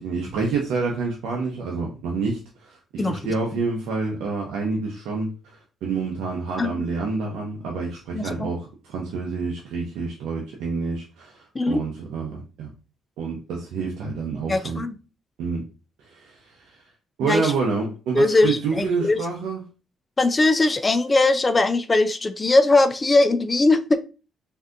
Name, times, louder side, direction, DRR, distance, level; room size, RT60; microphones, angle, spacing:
voice 1, 0.0-12.7 13.2-14.8 15.4-15.6 16.1-16.6 17.2-19.6, right 4 dB, 85° right, -1 dB, 0.6 m, -28 dB
voice 2, 8.1-8.5 11.5-11.8 14.5-14.9 17.2-17.5 18.1-19.2 20.2-24.0, left 2 dB, 25° left, 10 dB, 0.3 m, -20 dB
3.3 x 2.7 x 2.4 m, 0.33 s
cardioid pair, 90°, 0 cm